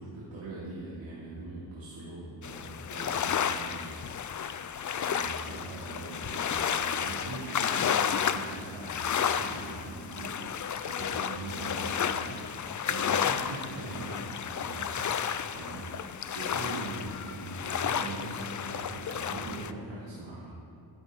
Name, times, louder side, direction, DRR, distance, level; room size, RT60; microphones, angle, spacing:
voice 1, 0.0-4.0 4.9-10.3 10.7-12.4 12.9-15.0 15.5-15.9 16.3-20.5, right 2 dB, 80° right, -8 dB, 3.0 m, -41 dB
sound 1, 2.4-19.7, left 8 dB, 40° left, 0.5 m, -32 dB
13.5 x 13.5 x 4.1 m, 2.5 s
wide cardioid pair, 125°, 46 cm